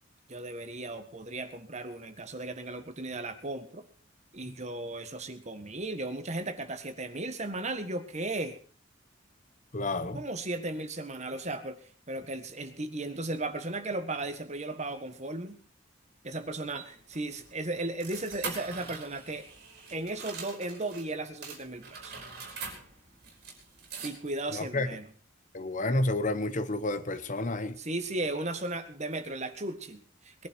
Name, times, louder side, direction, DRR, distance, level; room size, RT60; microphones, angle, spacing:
voice 1, 0.3-3.8 4.3-8.6 10.1-15.6 16.2-19.5 19.9-22.2 24.0-25.1 27.8-30.5, right 2 dB, 35° right, 8 dB, 1.6 m, -36 dB
voice 2, 9.7-10.2 24.5-24.9 25.5-27.8, left 2 dB, 40° left, 13 dB, 0.9 m, -30 dB
sound 1, 16.3-21.1 21.4-24.5, right 5 dB, 50° right, 5.0 m, -44 dB
21.0 x 11.5 x 4.6 m, 0.42 s
head